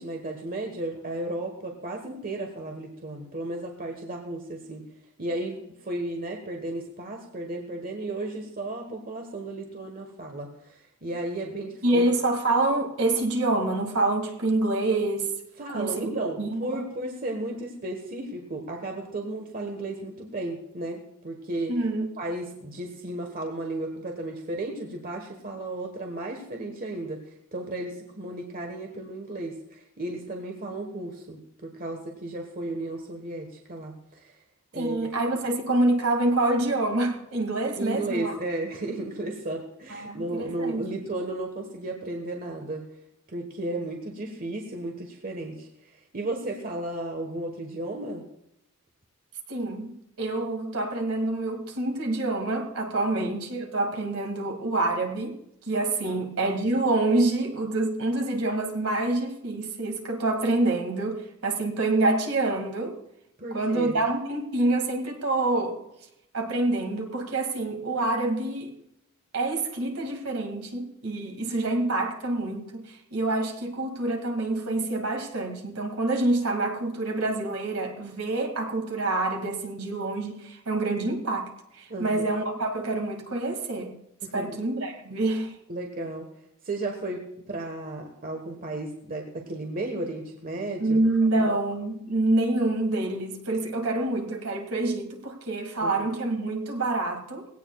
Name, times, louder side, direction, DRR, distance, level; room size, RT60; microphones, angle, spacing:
voice 1, 0.0-4.8 5.2-12.0 15.6-21.8 22.2-27.2 27.5-34.3 34.7-35.1 37.8-42.8 43.3-48.3 53.1-53.2 56.1-56.2 63.4-64.0 81.9-82.2 84.2-84.6 85.7-86.3 86.6-91.0 91.3-91.6 95.8-96.1, right 2 dB, 40° right, 3 dB, 1.4 m, -34 dB
voice 2, 11.8-15.4 15.7-16.8 21.7-22.1 34.7-38.3 39.9-41.0 49.5-55.4 55.7-63.0 63.5-65.8 66.3-68.8 69.3-83.9 84.3-85.6 90.8-97.5, right 2 dB, 70° right, 2 dB, 2.3 m, -27 dB
19.0 x 17.0 x 2.4 m, 0.78 s
head